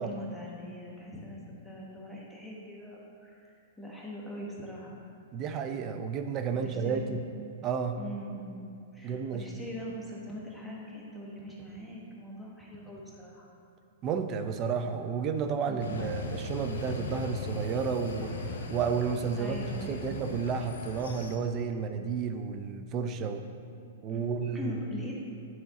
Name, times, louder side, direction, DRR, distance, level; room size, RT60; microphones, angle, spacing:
voice 1, 0.0-5.0 6.5-7.2 8.0-8.6 8.9-13.5 15.7-16.0 19.4-20.1 24.1-25.2, equal, ahead, -5 dB, 1.2 m, -42 dB
voice 2, 5.3-7.2 7.6-8.0 9.0-9.4 14.0-18.4 18.7-23.4 24.0-24.8, right 6 dB, 35° right, 7 dB, 0.5 m, -31 dB
sound 1, 15.8-21.4, left 3 dB, 80° left, 0.7 m, -38 dB
9.3 x 4.3 x 3.8 m, 2.3 s
hypercardioid pair, 125°, 0 cm